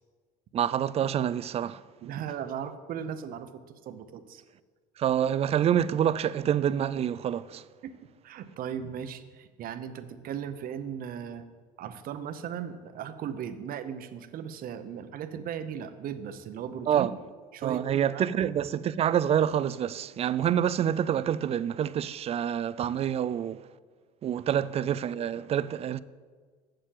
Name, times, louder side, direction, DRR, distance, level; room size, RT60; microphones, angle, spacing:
voice 1, 0.5-1.8 5.0-7.6 16.9-17.1 17.6-23.6 24.2-26.0, right 9 dB, 35° right, 0.4 m, -27 dB
voice 2, 2.0-4.4 7.8-8.0 8.2-11.4 11.8-17.1 17.5-18.4, right 8 dB, 50° right, 0.8 m, -37 dB
7.6 x 6.7 x 7.4 m
supercardioid pair, 105°, 19 cm